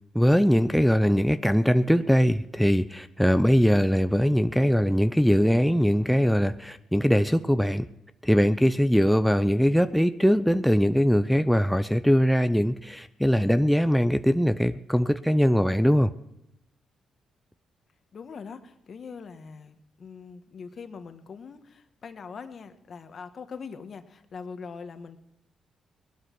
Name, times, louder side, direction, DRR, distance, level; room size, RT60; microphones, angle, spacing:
voice 1, 0.1-7.8 8.2-16.1, equal, ahead, 9 dB, 0.7 m, -21 dB
voice 2, 18.1-25.2, left 5 dB, 55° left, 8 dB, 1.6 m, -42 dB
19.0 x 12.0 x 6.2 m, 0.85 s
cardioid pair, 65°, 0 cm